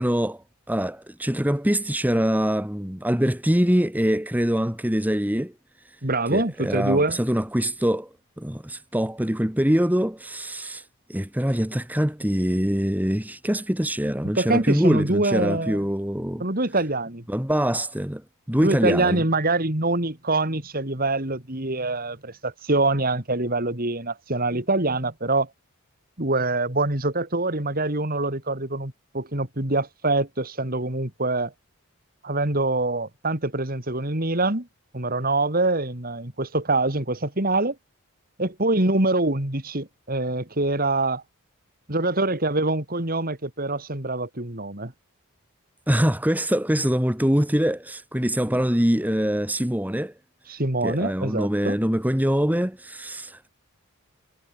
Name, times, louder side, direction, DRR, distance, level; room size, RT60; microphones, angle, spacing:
voice 1, 0.0-5.5 5.8-6.0 6.3-8.1 8.4-16.5 17.3-19.2 45.9-50.1 50.8-53.5, equal, 5° right, 1.6 m, -24 dB
voice 2, 6.0-7.2 14.4-15.8 16.4-17.2 18.6-25.5 26.2-31.5 32.2-34.7 34.9-37.7 38.4-41.2 41.9-44.9 50.5-51.8, right 2 dB, 40° right, 3.3 m, -24 dB
head